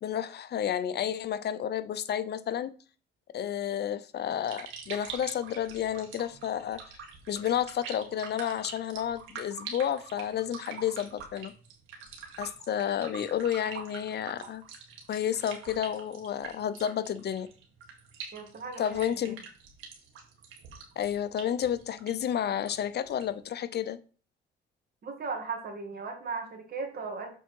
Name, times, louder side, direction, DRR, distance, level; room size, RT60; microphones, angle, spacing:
voice 1, 0.0-2.7 3.3-6.8 7.3-11.5 12.4-14.6 15.1-17.5 18.8-19.4 21.0-24.0, left 9 dB, 55° left, 13 dB, 0.6 m, -31 dB
sound 1, 4.2-23.4, right 5 dB, 85° right, 1.9 m, -45 dB
voice 2, 18.3-19.3 25.0-27.4, right 4 dB, 50° right, 3 dB, 2.4 m, -37 dB
7.1 x 4.6 x 4.5 m, 0.39 s
cardioid pair, 90°, 20 cm